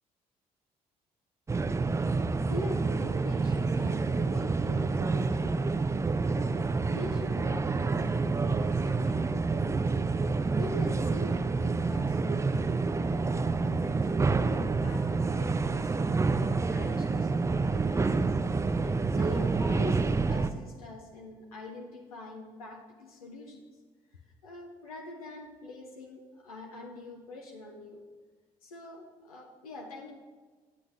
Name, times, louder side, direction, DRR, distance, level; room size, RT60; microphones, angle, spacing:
sound 1, 1.5-20.5, right 4 dB, 15° right, 0.4 m, -28 dB
voice 1, 2.5-9.8 10.1-14.0 14.3-18.2 18.8-23.6 24.4-28.0 28.6-30.1, left 1 dB, 90° left, 1 dB, 0.6 m, -44 dB
9.3 x 8.2 x 2.5 m, 1.4 s
hypercardioid pair, 45°, 18 cm